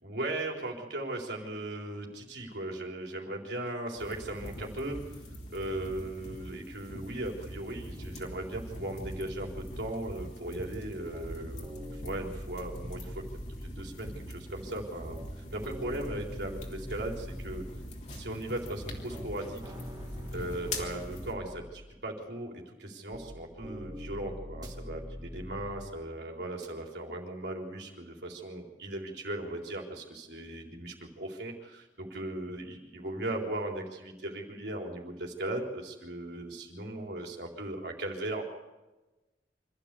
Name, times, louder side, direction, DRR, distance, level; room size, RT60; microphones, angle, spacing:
voice 1, 0.0-5.1 5.5-11.6 11.9-13.2 13.6-17.6 18.1-19.7 20.3-38.4, right 1 dB, 70° right, 0 dB, 3.8 m, -38 dB
sound 1, 4.0-21.3, equal, 40° left, 3.2 m, -43 dB
sound 2, 9.1-9.8 11.1-11.3 11.6-13.8 15.1-15.3 15.6-17.8 19.1-19.3 19.6-21.7 23.1-23.3 23.6-25.8 26.6-26.7, equal, 25° right, 2.7 m, -43 dB
25.5 x 14.0 x 8.3 m, 1.1 s
head